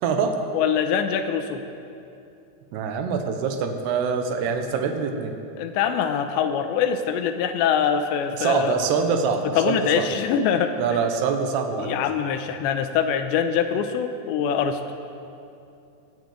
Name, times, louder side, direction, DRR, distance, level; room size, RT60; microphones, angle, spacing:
voice 1, 0.0-0.4 2.7-5.3 8.4-10.1 10.8-12.1, right 6 dB, 75° right, 6 dB, 2.9 m, -25 dB
voice 2, 0.5-1.6 5.6-8.7 9.6-10.7 11.8-14.8, left 7 dB, 85° left, 8 dB, 3.0 m, -23 dB
16.0 x 10.5 x 8.3 m, 2.6 s
omnidirectional pair, 5.2 m